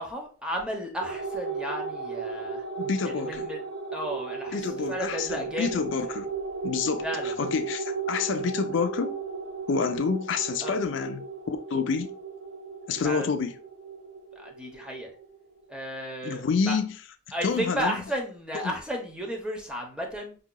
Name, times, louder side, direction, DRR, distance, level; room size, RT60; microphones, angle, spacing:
voice 1, 0.0-2.6 3.0-3.6 3.9-5.7 7.0-7.3 10.6-10.8 13.0-13.3 14.3-15.1 15.7-16.8 17.3-20.4, equal, 5° right, 0.7 m, -33 dB
sound 1, 1.0-15.8, right 4 dB, 80° right, 0.7 m, -35 dB
voice 2, 2.8-3.5 4.5-6.3 6.6-9.2 9.7-12.1 12.9-13.6 16.2-17.0 17.4-18.0 18.6-18.8, left 5 dB, 70° left, 0.4 m, -28 dB
4.9 x 2.7 x 2.2 m
head